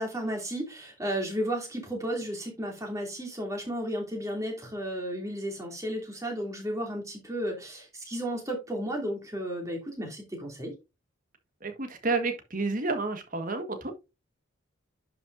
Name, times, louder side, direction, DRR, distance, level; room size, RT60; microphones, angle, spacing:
voice 1, 0.0-10.8, equal, 15° right, 2.7 m, -33 dB
voice 2, 11.6-13.9, right 3 dB, 40° right, 1.5 m, -30 dB
10.5 x 5.6 x 2.6 m
head